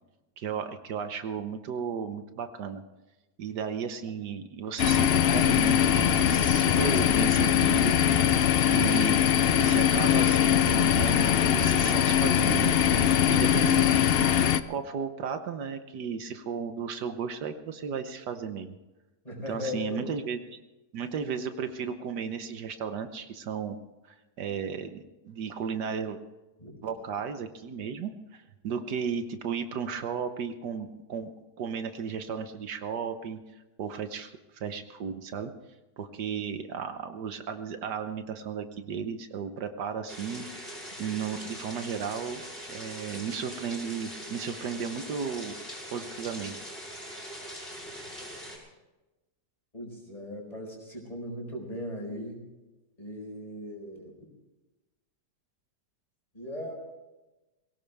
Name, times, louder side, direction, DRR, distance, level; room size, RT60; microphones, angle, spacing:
voice 1, 0.4-2.8 3.4-8.0 8.7-9.2 9.5-12.7 13.3-13.9 14.7-18.8 19.5-20.6 20.9-23.8 24.0-26.2 26.8-31.3 31.6-33.4 33.8-35.5 36.0-40.5 41.0-42.4 42.7-45.5 45.9-46.5, right 6 dB, 75° right, 8 dB, 1.5 m, -34 dB
sound 1, 4.8-14.6, left 9 dB, 85° left, 0.5 m, -22 dB
voice 2, 19.2-20.0 26.6-26.7 49.7-52.4 53.0-54.2 56.3-56.7, left 1 dB, 20° left, 0 dB, 4.7 m, -38 dB
sound 2, 40.1-48.6, equal, 35° left, 5.5 m, -42 dB
22.5 x 17.0 x 3.4 m, 1.1 s
omnidirectional pair, 1.8 m